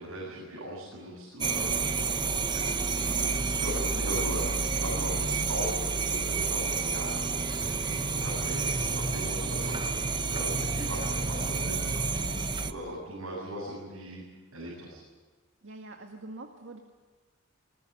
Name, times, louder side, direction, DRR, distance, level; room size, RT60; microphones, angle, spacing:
voice 1, 0.0-1.8 2.5-5.7 6.0-6.7 6.9-7.2 7.5-14.2 14.5-15.0, equal, 80° right, -4 dB, 7.6 m, -39 dB
sound 1, 1.4-12.7, right 4 dB, 20° right, 1.0 m, -29 dB
voice 2, 15.6-16.8, right 2 dB, 65° right, 3 dB, 2.0 m, -44 dB
22.0 x 21.0 x 9.9 m, 1.3 s
head